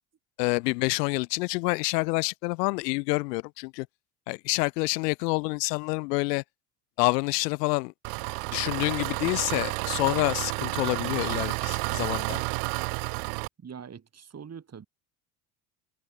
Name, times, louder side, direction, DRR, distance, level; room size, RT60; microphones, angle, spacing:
voice 1, 0.4-3.9 4.3-6.4 7.0-7.9 8.5-12.4, left 26 dB, 80° left, 1.5 m, -27 dB
Engine, 8.0-13.5, right 40 dB or more, 70° right, 1.0 m, -31 dB
voice 2, 13.6-14.9, right 7 dB, 30° right, 5.8 m, -43 dB
supercardioid pair, 90°, 48 cm